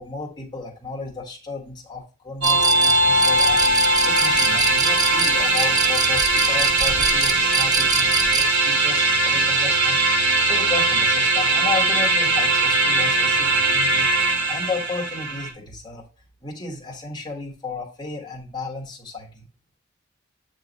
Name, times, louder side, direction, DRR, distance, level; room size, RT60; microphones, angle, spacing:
voice 1, 0.0-3.6 4.0-10.0 10.5-14.1 14.5-16.1 16.4-19.5, left 4 dB, 20° left, 1 dB, 1.3 m, -33 dB
sound 1, 2.4-8.5, right 5 dB, 20° right, 0.3 m, -26 dB
sound 2, 2.4-15.5, right 2 dB, 80° right, 1.3 m, -20 dB
8.2 x 3.2 x 4.0 m, 0.34 s
head